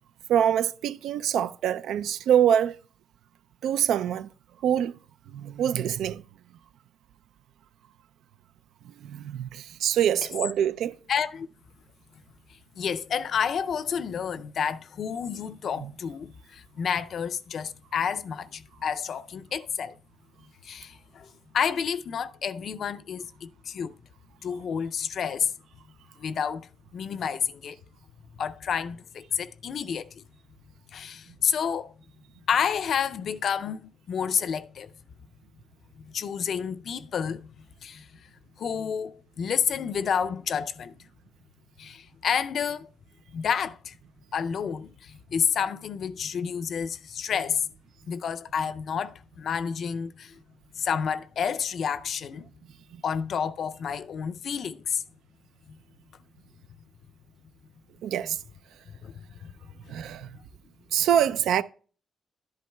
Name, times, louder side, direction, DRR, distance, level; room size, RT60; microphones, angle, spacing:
voice 1, 0.3-2.8 3.6-4.3 4.6-4.9 5.3-6.2 8.8-11.0 15.8-15.9 52.9-53.0 58.0-58.4 59.9-60.3 60.9-61.6, right 9 dB, 85° right, 0.3 m, -25 dB
voice 2, 11.1-11.5 12.8-20.0 20.6-21.3 21.5-23.9 24.4-25.5 26.2-27.8 28.4-30.2 30.9-31.9 32.5-34.9 36.0-37.5 37.8-38.1 38.6-40.9 41.8-42.9 43.3-44.0 44.3-47.7 48.1-50.4 50.8-52.5 53.0-55.0 59.0-59.5, left 7 dB, 65° left, 0.4 m, -30 dB
11.0 x 10.5 x 2.2 m
cardioid pair, 70°, 0 cm